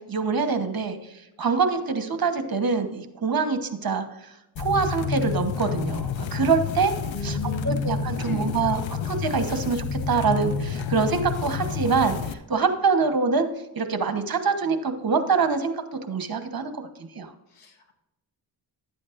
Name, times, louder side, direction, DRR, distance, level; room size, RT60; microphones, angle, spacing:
voice 1, 0.1-1.0 1.4-4.0 4.6-6.9 7.2-7.4 7.6-8.8 9.0-13.5 13.7-17.3, right 5 dB, 45° right, 8 dB, 1.2 m, -25 dB
sound 1, 4.6-12.3, left 5 dB, 65° left, 0.8 m, -29 dB
voice 2, 7.1-7.8 8.2-9.0 17.5-17.9, left 4 dB, 90° left, 3 dB, 1.5 m, -36 dB
11.5 x 8.5 x 2.6 m, 0.94 s
cardioid pair, 65°, 50 cm